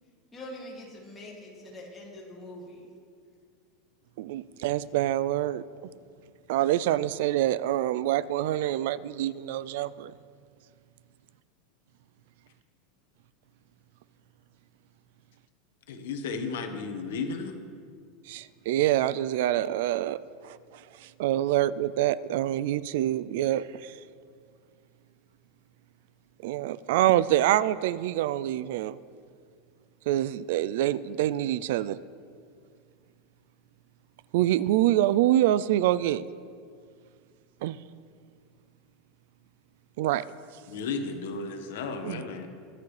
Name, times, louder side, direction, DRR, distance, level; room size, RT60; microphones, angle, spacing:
voice 1, 0.3-2.9, left 1 dB, 15° left, -4 dB, 2.4 m, -43 dB
voice 2, 4.2-5.6 6.5-10.1 18.3-24.0 26.4-29.0 30.1-32.0 34.3-36.3 37.6-37.8 40.0-40.2 42.1-42.2, right 13 dB, 65° right, 18 dB, 0.3 m, -26 dB
voice 3, 15.9-17.6 40.7-42.5, left 4 dB, 80° left, 5 dB, 1.4 m, -34 dB
23.0 x 8.4 x 3.3 m, 2.2 s
supercardioid pair, 165°, 0 cm